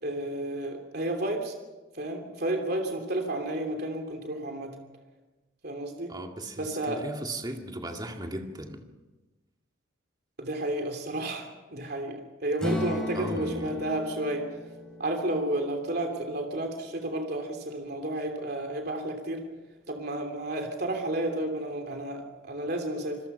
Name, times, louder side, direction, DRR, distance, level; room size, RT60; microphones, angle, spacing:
voice 1, 0.0-1.5 1.9-4.7 5.6-6.1 6.6-7.0 10.4-14.5 15.0-19.4 19.9-23.2, right 1 dB, 50° right, 3 dB, 3.1 m, -31 dB
voice 2, 6.1-8.8 13.1-13.8, right 1 dB, 20° right, 3 dB, 2.1 m, -37 dB
Strum, 12.6-16.8, left 1 dB, 5° left, 5.9 m, -36 dB
27.0 x 21.0 x 5.7 m, 1.1 s
head